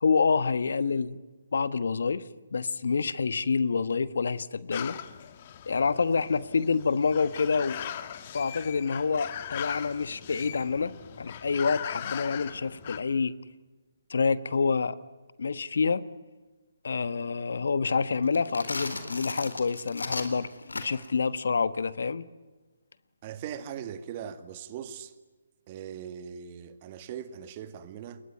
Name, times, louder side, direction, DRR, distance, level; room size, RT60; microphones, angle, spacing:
voice 1, 0.0-1.2 1.5-5.0 5.7-7.9 8.3-13.3 14.1-15.0 15.4-16.0 16.8-22.3, left 5 dB, 70° left, 1.2 m, -27 dB
sound 1, 4.7-13.0, left 10 dB, 40° left, 1.7 m, -40 dB
sound 2, 18.3-21.2, left 2 dB, 85° left, 4.2 m, -36 dB
voice 2, 23.2-25.1 25.7-28.2, right 9 dB, 35° right, 2.0 m, -40 dB
28.5 x 22.0 x 9.3 m
figure-of-eight pair, 145°, 0 cm